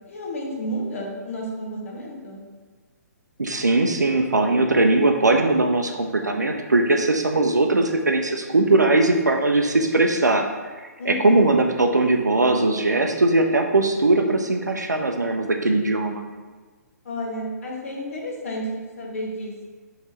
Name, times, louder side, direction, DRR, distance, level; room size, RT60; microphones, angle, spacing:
voice 1, 0.1-2.4 11.0-11.5 17.0-19.5, equal, 50° left, -1 dB, 1.1 m, -31 dB
voice 2, 3.4-10.5 10.8-16.2, right 2 dB, 80° right, 3 dB, 0.4 m, -20 dB
5.8 x 3.1 x 2.9 m, 1.4 s
figure-of-eight pair, 125°, 9 cm